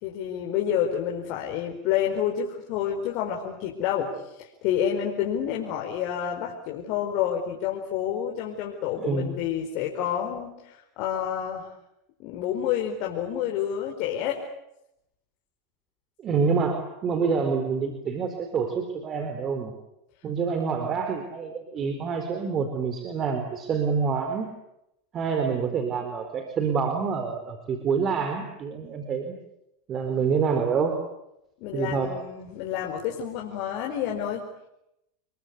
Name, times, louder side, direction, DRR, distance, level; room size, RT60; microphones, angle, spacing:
voice 1, 0.0-4.1 4.4-11.7 12.2-14.4 31.6-34.4, left 9 dB, 60° left, 0 dB, 4.7 m, -29 dB
voice 2, 9.0-9.3 16.2-19.7 20.2-24.5 25.1-29.3 29.9-31.0 31.7-32.1, right 5 dB, 35° right, 7 dB, 4.2 m, -27 dB
29.0 x 22.5 x 8.5 m, 0.84 s
hypercardioid pair, 105°, 0 cm